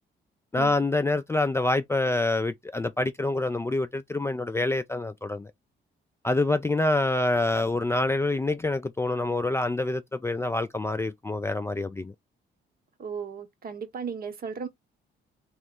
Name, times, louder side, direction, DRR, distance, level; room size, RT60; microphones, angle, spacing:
voice 1, 0.5-5.5 6.2-12.1, left 2 dB, 15° left, 0.3 m, -26 dB
voice 2, 13.0-14.7, right 6 dB, 50° right, 1.0 m, -35 dB
3.1 x 2.9 x 3.6 m
cardioid pair, 90°, 20 cm